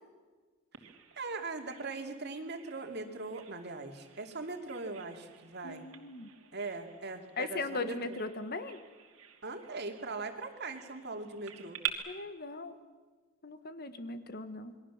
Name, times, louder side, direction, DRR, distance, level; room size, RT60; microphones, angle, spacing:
Bird vocalization bird call bird song, 0.7-11.9, right 11 dB, 80° right, 2.8 m, -47 dB
voice 1, 1.2-5.9 6.5-8.2 9.4-11.8, right 3 dB, 50° right, 5 dB, 2.6 m, -40 dB
voice 2, 5.6-6.3 7.4-8.8 12.1-12.8 13.4-14.7, left 3 dB, 45° left, 10 dB, 1.5 m, -38 dB
28.0 x 22.0 x 7.4 m, 1.4 s
head